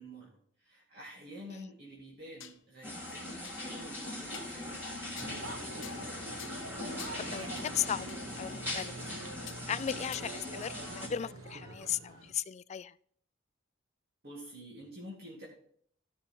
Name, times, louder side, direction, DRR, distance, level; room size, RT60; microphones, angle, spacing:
voice 1, 0.0-5.2 14.2-15.4, equal, 50° right, -5 dB, 2.6 m, -49 dB
sound 1, 2.0-2.6 3.0-3.1 3.4-3.6 4.3-4.6 5.2-5.4 5.8-6.1 6.4-6.6 7.0-7.2 7.6-7.7 8.1-8.2 8.7-8.8 9.5-9.6 10.1-10.2, left 11 dB, 70° left, 0.9 m, -48 dB
sound 2, 2.8-11.1, left 1 dB, 10° right, 3.1 m, -41 dB
sound 3, 5.2-12.3, right 2 dB, 80° right, 1.3 m, -45 dB
voice 2, 7.2-8.1 8.4-8.9 9.7-12.9, left 9 dB, 35° left, 17 dB, 0.3 m, -36 dB
14.0 x 6.3 x 4.5 m, 0.62 s
head